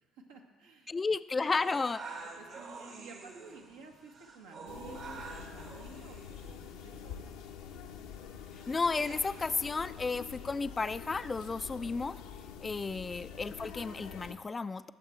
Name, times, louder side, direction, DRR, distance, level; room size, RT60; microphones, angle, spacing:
voice 1, 0.1-1.5 2.1-7.3, right 4 dB, 75° right, 0 dB, 1.6 m, -53 dB
voice 2, 0.9-2.1 8.7-12.2 12.6-14.9, left 4 dB, 25° left, 14 dB, 0.4 m, -33 dB
sound 1, 1.5-9.5, right 4 dB, 55° right, 2.0 m, -48 dB
sound 2, 4.7-14.4, left 8 dB, 70° left, 0.8 m, -46 dB
18.5 x 7.3 x 4.6 m, 1.4 s
figure-of-eight pair, 50°, 0 cm